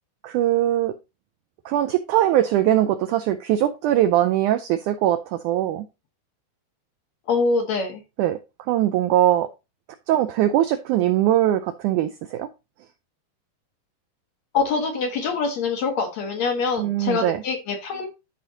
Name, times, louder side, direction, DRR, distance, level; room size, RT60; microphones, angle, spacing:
voice 1, 0.2-0.9 1.6-5.8 8.2-8.4 8.7-9.5 10.1-12.5 16.8-17.4, right 12 dB, 90° right, 1.7 m, -21 dB
voice 2, 7.3-8.0 14.5-18.1, left 4 dB, 60° left, 2.0 m, -24 dB
13.0 x 5.0 x 2.7 m
omnidirectional pair, 4.3 m